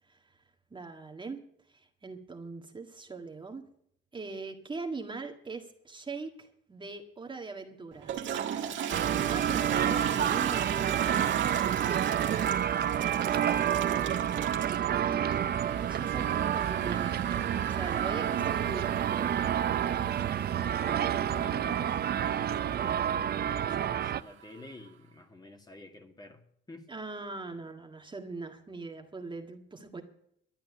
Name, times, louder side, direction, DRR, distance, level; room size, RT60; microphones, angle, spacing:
voice 1, 0.7-1.4 1.7-3.6 4.1-8.1 9.1-11.5 14.9-19.4 19.8-20.0 22.5-22.6 26.9-30.0, right 3 dB, 25° right, 4 dB, 1.7 m, -41 dB
Toilet flush, 7.9-24.7, right 9 dB, 70° right, 1.8 m, -39 dB
sound 1, 8.9-24.2, right 10 dB, 50° right, 0.6 m, -29 dB
voice 2, 13.7-14.5 20.7-26.9, left 2 dB, 20° left, 4 dB, 2.1 m, -49 dB
12.5 x 9.0 x 8.5 m, 0.68 s
cardioid pair, 90°, 20 cm